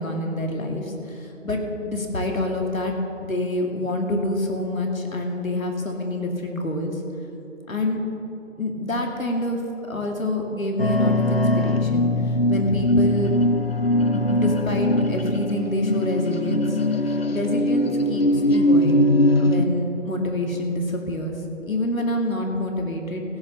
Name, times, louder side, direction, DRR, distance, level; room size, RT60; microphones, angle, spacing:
voice 1, 0.0-3.0 3.2-7.0 7.7-8.0 8.6-9.6 9.9-13.4 14.1-16.8 17.1-19.1 19.4-21.4 21.7-23.2, left 1 dB, 90° left, 1 dB, 2.5 m, -27 dB
sound 1, 10.8-19.7, left 1 dB, 50° left, 0.7 m, -21 dB
16.0 x 7.1 x 6.7 m, 2.9 s
figure-of-eight pair, 175°, 40 cm